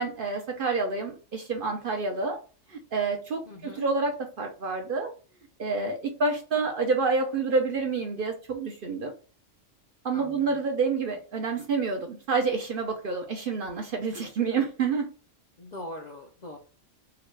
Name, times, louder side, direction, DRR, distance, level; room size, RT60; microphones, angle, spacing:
voice 1, 0.0-2.4 2.7-5.1 5.6-9.1 10.0-15.1, right 4 dB, 55° right, 3 dB, 0.6 m, -28 dB
voice 2, 3.5-3.8 10.1-10.6 15.6-16.6, left 1 dB, 55° left, 1 dB, 0.4 m, -41 dB
3.8 x 2.2 x 3.2 m, 0.36 s
omnidirectional pair, 1.3 m